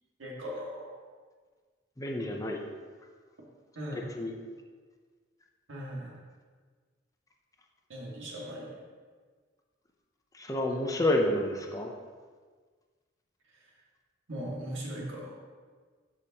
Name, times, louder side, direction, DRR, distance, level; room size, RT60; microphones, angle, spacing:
voice 1, 0.2-1.0 3.8-4.1 5.7-6.2 7.9-8.8 13.5-13.7 14.3-15.3, equal, 85° right, -3 dB, 2.0 m, -39 dB
voice 2, 2.0-2.6 3.9-4.3 10.3-11.9, left 1 dB, 15° left, 1 dB, 0.7 m, -29 dB
13.0 x 5.0 x 2.9 m, 1.5 s
head